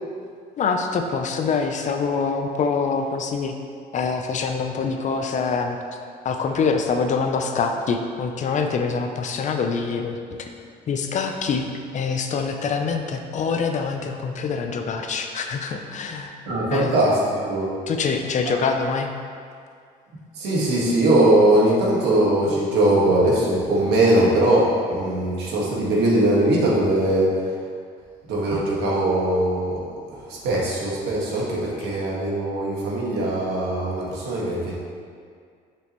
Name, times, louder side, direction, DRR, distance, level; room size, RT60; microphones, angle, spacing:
voice 1, 0.6-3.5 3.9-5.8 6.2-10.5 10.9-16.4 16.7-17.0 17.9-19.1, left 5 dB, 45° left, 5 dB, 0.6 m, -25 dB
voice 2, 16.5-17.7 20.3-27.4 28.3-29.8 30.1-34.7, right 1 dB, 80° right, -4 dB, 1.7 m, -20 dB
6.8 x 6.3 x 3.1 m, 2.2 s
cardioid pair, 110°, 17 cm